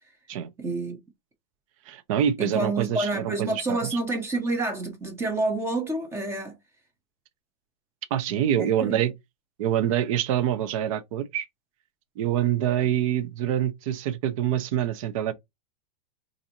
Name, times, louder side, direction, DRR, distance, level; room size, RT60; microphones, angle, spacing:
voice 1, 0.6-1.0 2.4-6.6 8.6-9.0, right 2 dB, 10° right, 0.7 m, -28 dB
voice 2, 1.9-3.8 8.1-9.1 9.6-11.5 12.2-15.3, right 10 dB, 50° right, 0.6 m, -25 dB
4.0 x 2.6 x 2.8 m
supercardioid pair, 160°, 21 cm